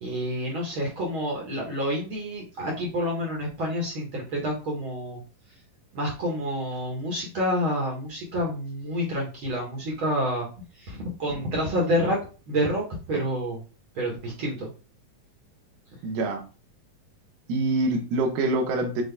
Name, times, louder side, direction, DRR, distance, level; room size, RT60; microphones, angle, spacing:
voice 1, 0.0-5.2 5.9-10.5 10.7-12.2 12.5-13.6 13.9-14.7, equal, 60° right, -2 dB, 1.3 m, -28 dB
voice 2, 16.0-16.4 17.5-19.0, right 2 dB, 85° right, 3 dB, 2.6 m, -25 dB
6.2 x 2.3 x 3.3 m, 0.34 s
omnidirectional pair, 3.9 m